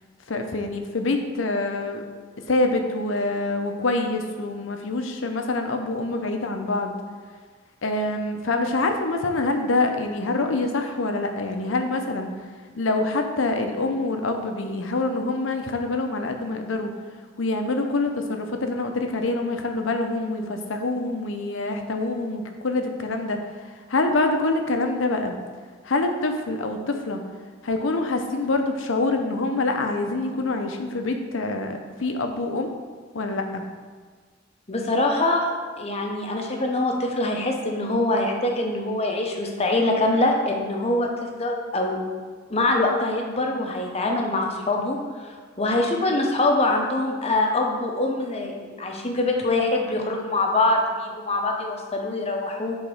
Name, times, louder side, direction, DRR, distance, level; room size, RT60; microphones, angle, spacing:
voice 1, 0.3-2.0 2.5-7.0 7.8-12.3 12.7-16.9 17.4-25.3 25.8-27.2 27.6-32.7 33.1-33.6, left 2 dB, 90° left, 5 dB, 0.7 m, -25 dB
voice 2, 34.7-42.1 42.5-52.8, left 2 dB, 35° left, 1 dB, 0.8 m, -24 dB
4.9 x 3.9 x 5.4 m, 1.5 s
head